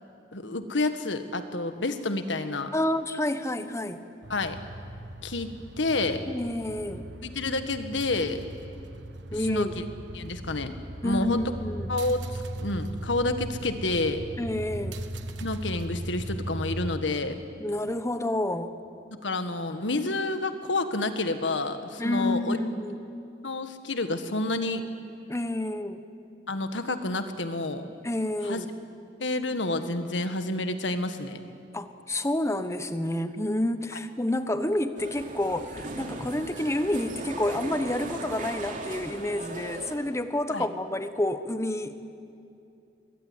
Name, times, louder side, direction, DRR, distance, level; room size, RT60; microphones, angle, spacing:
voice 1, 0.3-2.7 4.3-4.6 5.2-6.2 7.2-8.4 9.3-9.8 10.1-10.7 11.0-11.4 11.9-12.2 12.5-14.2 15.4-17.4 19.2-22.6 23.4-24.8 26.5-27.9 28.4-28.6 29.2-31.4 40.5-40.6, left 2 dB, 85° left, 9 dB, 1.7 m, -29 dB
voice 2, 2.7-4.1 6.3-7.1 9.3-9.7 11.0-12.0 14.4-15.0 17.6-18.7 22.0-23.0 25.3-26.1 28.0-28.7 31.7-42.0, left 1 dB, 15° left, 10 dB, 1.1 m, -29 dB
sound 1, 4.2-17.0, right 1 dB, 75° right, 1.3 m, -38 dB
sound 2, 35.0-40.0, right 2 dB, 45° right, 2.9 m, -38 dB
22.5 x 21.5 x 9.7 m, 2.6 s
head